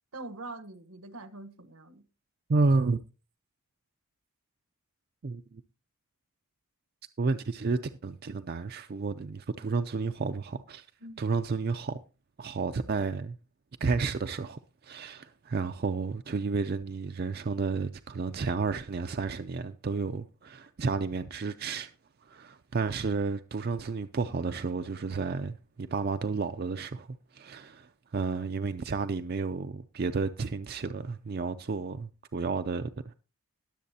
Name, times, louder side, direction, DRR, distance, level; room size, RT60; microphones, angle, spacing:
voice 1, 0.1-2.1 11.0-11.2, right 2 dB, 80° right, 1.1 m, -43 dB
voice 2, 2.5-3.0 5.2-5.6 7.2-10.9 11.2-12.0 12.4-13.4 13.8-21.9 22.2-27.1 27.3-33.1, right 4 dB, 45° right, 0.4 m, -31 dB
20.5 x 7.4 x 2.8 m
head